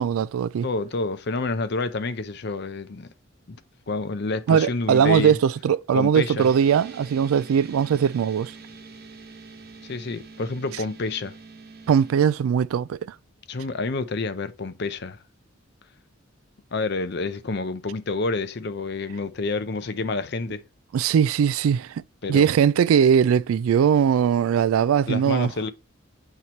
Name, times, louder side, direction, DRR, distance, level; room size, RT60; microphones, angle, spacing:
voice 1, 0.0-0.7 4.5-8.5 11.9-13.0 20.9-22.0 22.3-25.5, right 7 dB, 85° right, 0.3 m, -20 dB
voice 2, 0.6-3.1 3.5-3.6 3.9-5.4 5.9-6.5 9.9-11.3 13.5-15.2 16.7-20.6 22.2-22.5 25.1-25.7, left 3 dB, 55° left, 0.6 m, -28 dB
sound 1, 6.4-12.1, right 4 dB, 50° right, 1.1 m, -44 dB
7.9 x 3.0 x 4.0 m
head